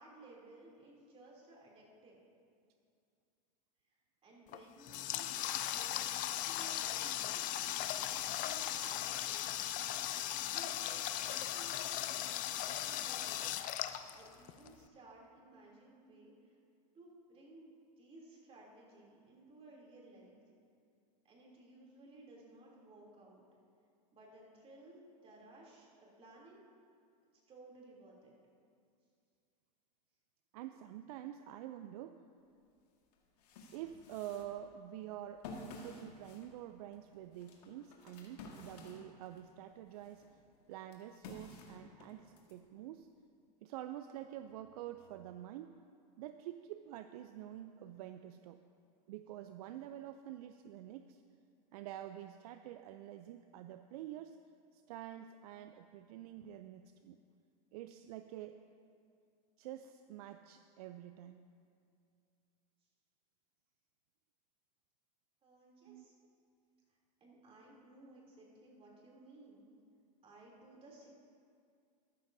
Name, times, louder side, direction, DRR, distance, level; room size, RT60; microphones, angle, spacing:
voice 1, 0.0-2.2 4.2-7.4 8.1-9.6 10.4-13.5 14.1-16.5 16.9-20.4 21.2-23.4 24.1-26.6 27.5-28.3 65.4-66.1 67.2-69.7 70.2-71.1, right 2 dB, 25° right, -3 dB, 3.0 m, -58 dB
Water tap faucet, 4.5-14.7, left 12 dB, 40° left, 0.5 m, -38 dB
voice 2, 30.5-32.2 33.7-40.2 40.7-43.1 43.6-45.7 46.2-48.6 49.1-51.2 51.7-54.4 54.7-57.2 57.7-58.6 59.6-61.4 65.8-66.1, right 12 dB, 65° right, 9 dB, 0.4 m, -47 dB
sound 1, 32.6-32.7 33.1-39.5 39.9-42.5, left 3 dB, 70° left, 1.8 m, -52 dB
13.5 x 12.5 x 2.7 m, 2.3 s
hypercardioid pair, 115°, 21 cm